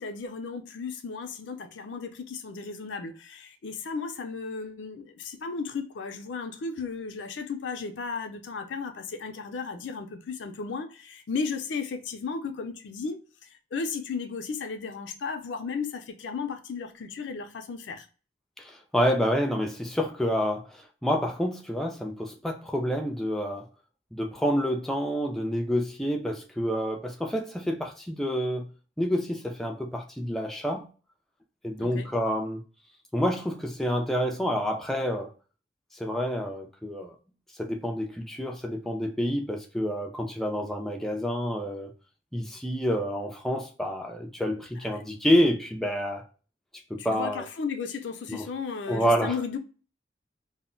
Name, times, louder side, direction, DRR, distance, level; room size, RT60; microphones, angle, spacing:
voice 1, 0.0-18.1 31.8-32.1 44.9-45.0 47.0-49.6, left 5 dB, 75° left, 0.4 m, -35 dB
voice 2, 18.6-23.7 24.1-28.7 29.0-30.9 31.6-32.6 33.1-35.3 35.9-37.2 37.6-41.9 42.3-46.2 46.9-47.5 48.3-48.5 48.9-49.4, equal, ahead, 0.3 m, -28 dB
2.1 x 2.1 x 3.6 m
head